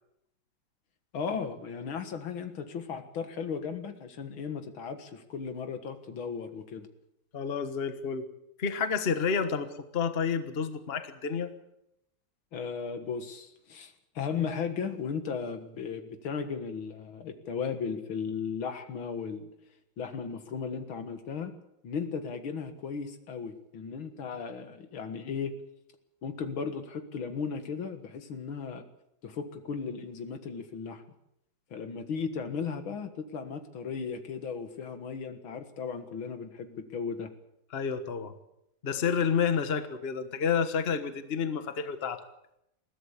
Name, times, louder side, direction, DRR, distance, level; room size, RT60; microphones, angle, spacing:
voice 1, 1.1-6.9 12.5-19.5 20.0-21.5 21.8-25.6 26.2-28.8 29.2-31.0 31.7-37.3, left 6 dB, 80° left, 8 dB, 2.5 m, -36 dB
voice 2, 7.3-8.2 8.6-11.5 37.7-38.3 38.8-42.2, left 6 dB, 35° left, 10 dB, 1.4 m, -30 dB
21.5 x 15.0 x 8.4 m, 0.83 s
omnidirectional pair, 2.2 m